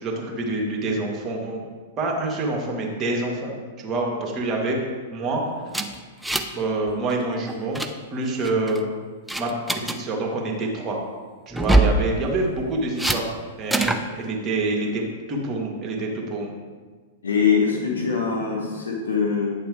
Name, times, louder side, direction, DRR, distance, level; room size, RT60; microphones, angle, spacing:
voice 1, 0.0-1.6 2.0-3.5 3.8-4.8 5.1-5.4 6.5-7.8 8.1-8.8 9.4-9.5 9.8-11.0 11.5-13.3 13.6-15.0 15.3-16.5, right 2 dB, 25° right, -1 dB, 2.2 m, -26 dB
sound 1, 5.7-6.6 6.9-7.1 7.5-7.9 8.4-8.8 9.3-10.0 11.5-12.0 13.0-13.2 13.7-14.0, right 2 dB, 5° right, 0.6 m, -22 dB
voice 2, 17.2-19.5, left 6 dB, 85° left, -1 dB, 1.7 m, -23 dB
9.2 x 6.8 x 3.7 m, 1.4 s
hypercardioid pair, 105°, 0 cm